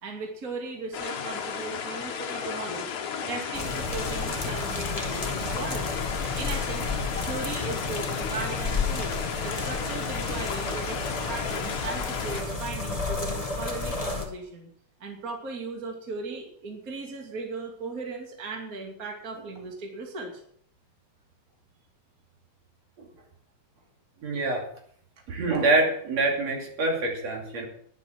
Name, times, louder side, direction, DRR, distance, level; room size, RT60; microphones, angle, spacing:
voice 1, 0.0-2.9 3.3-6.0 6.4-6.9 7.2-14.7 15.0-20.4, right 3 dB, 30° right, 1 dB, 2.7 m, -37 dB
sound 1, 0.9-12.4, left 6 dB, 80° left, 2.9 m, -34 dB
sound 2, 3.5-14.3, left 3 dB, 20° left, 1.1 m, -32 dB
voice 2, 24.2-24.6 25.3-27.7, right 2 dB, 60° right, 0 dB, 3.9 m, -26 dB
11.5 x 11.0 x 6.2 m, 0.64 s
omnidirectional pair, 3.4 m